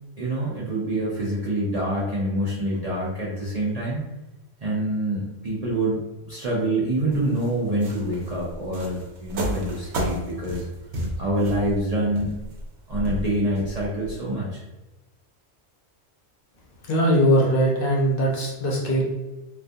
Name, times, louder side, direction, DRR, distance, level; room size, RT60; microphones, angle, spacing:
voice 1, 0.2-4.1 4.6-10.7 11.2-12.3 12.9-14.6, right 1 dB, 50° right, -6 dB, 0.5 m, -26 dB
sound 1, 7.1-14.1, right 1 dB, 85° right, 0.9 m, -32 dB
voice 2, 16.9-19.0, equal, 60° left, -2 dB, 0.7 m, -20 dB
2.3 x 2.3 x 2.6 m, 1.1 s
omnidirectional pair, 1.1 m